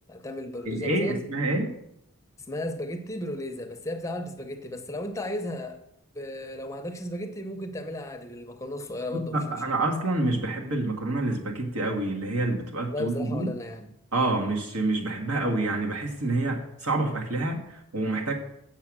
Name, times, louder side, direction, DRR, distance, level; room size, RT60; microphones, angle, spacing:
voice 1, 0.1-1.3 2.5-5.8 6.1-9.6 12.8-13.9, left 1 dB, 15° left, 6 dB, 0.6 m, -35 dB
voice 2, 0.7-1.7 9.1-13.5 14.1-18.3, right 2 dB, 90° right, 1 dB, 1.7 m, -27 dB
7.6 x 6.8 x 6.0 m, 0.79 s
head